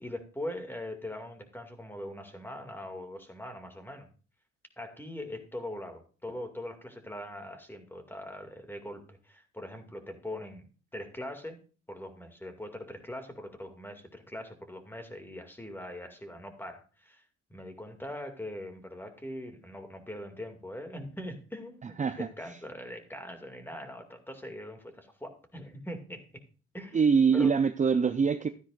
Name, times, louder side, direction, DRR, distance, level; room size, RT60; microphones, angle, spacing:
voice 1, 0.0-4.1 4.8-10.6 10.9-11.6 11.9-17.2 17.5-26.2 26.7-27.0 27.3-27.5, left 1 dB, 5° left, 5 dB, 2.3 m, -41 dB
voice 2, 22.0-22.6 26.9-28.5, right 6 dB, 25° right, 10 dB, 0.5 m, -24 dB
13.0 x 9.9 x 2.5 m, 0.37 s
cardioid pair, 90°, 30 cm